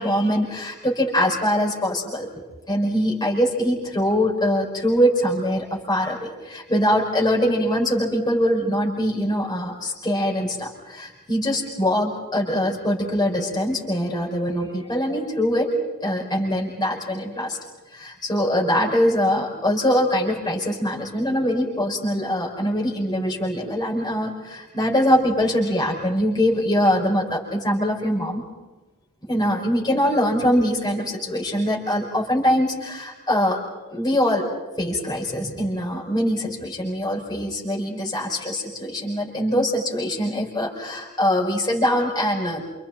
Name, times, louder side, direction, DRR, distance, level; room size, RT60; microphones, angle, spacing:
voice 1, 0.0-2.3 2.7-15.7 16.0-17.6 17.9-28.4 29.3-33.6 33.9-34.5 34.8-42.6, equal, 20° left, -2 dB, 5.5 m, -23 dB
29.5 x 28.0 x 4.4 m, 1.1 s
head